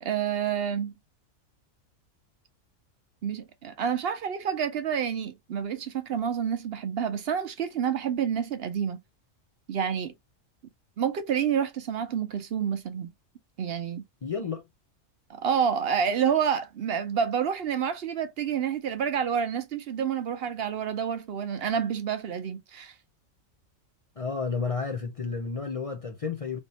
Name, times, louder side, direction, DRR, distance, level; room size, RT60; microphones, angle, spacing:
voice 1, 0.0-0.9 3.2-9.0 9.7-10.1 11.0-13.1 13.6-14.0 15.3-22.9, right 8 dB, 60° right, 0.7 m, -28 dB
voice 2, 14.2-14.6 24.2-26.6, left 5 dB, 60° left, 0.3 m, -31 dB
3.4 x 2.6 x 4.1 m
omnidirectional pair, 1.4 m